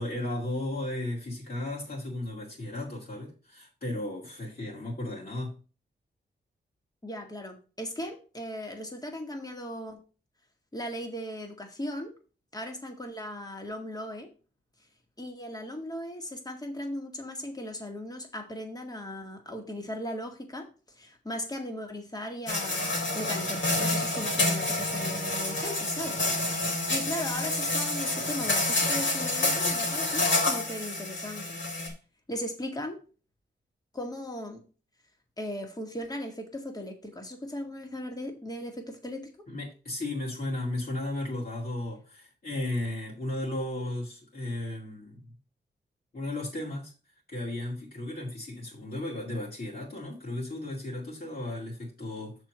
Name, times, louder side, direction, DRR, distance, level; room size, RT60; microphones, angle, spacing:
voice 1, 0.0-5.6 39.5-45.3 46.1-46.9 47.3-52.4, left 1 dB, 50° left, -5 dB, 2.5 m, -35 dB
voice 2, 7.0-10.0 10.7-12.1 12.5-14.3 15.2-20.7 21.0-31.6 32.3-33.0 33.9-34.6 35.4-39.3, left 1 dB, 20° left, 3 dB, 1.9 m, -37 dB
sound 1, 22.5-31.9, left 2 dB, 75° left, 3.1 m, -28 dB
6.6 x 4.6 x 6.2 m, 0.35 s
wide cardioid pair, 90°, 19 cm